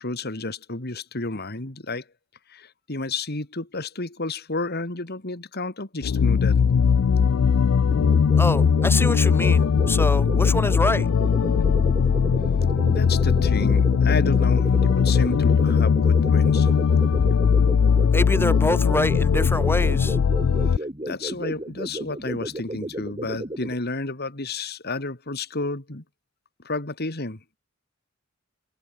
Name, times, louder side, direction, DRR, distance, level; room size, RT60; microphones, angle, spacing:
voice 1, 0.0-2.0 2.5-6.6 12.9-16.7 21.0-26.0 26.6-27.4, left 3 dB, 50° left, 2.7 m, -31 dB
sound 1, 6.0-20.8, left 6 dB, 75° left, 0.4 m, -19 dB
sound 2, 7.9-23.7, right 1 dB, 25° right, 3.3 m, -34 dB
voice 2, 8.4-11.1 18.1-20.2, left 1 dB, 10° left, 3.1 m, -26 dB
head